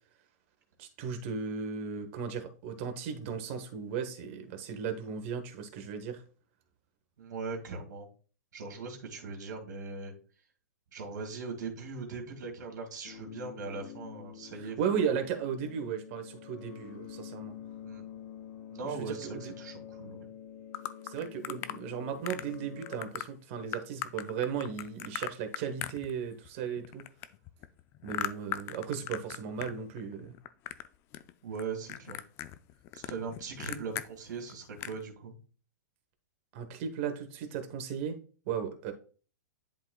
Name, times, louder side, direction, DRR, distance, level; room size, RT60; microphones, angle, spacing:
voice 1, 0.8-6.2 14.6-17.6 18.8-19.5 21.0-27.0 28.0-30.4 36.5-38.2 38.5-38.9, right 7 dB, 40° right, 6 dB, 1.2 m, -36 dB
voice 2, 7.2-8.1 8.5-10.1 10.9-15.1 17.8-18.0 18.7-20.3 31.4-32.2 32.9-35.3, right 4 dB, 75° right, 1 dB, 2.2 m, -40 dB
sound 1, 13.0-23.0, left 9 dB, 50° left, 1.2 m, -47 dB
sound 2, 20.7-21.8 22.3-22.6 22.8-23.3 23.7-26.5 26.8-29.7 30.0-30.9 31.1-31.6 31.9-34.1 34.5-34.6 34.8-35.0, left 13 dB, 25° left, 0.4 m, -38 dB
10.5 x 3.8 x 2.3 m, 0.39 s
hypercardioid pair, 145°, 10 cm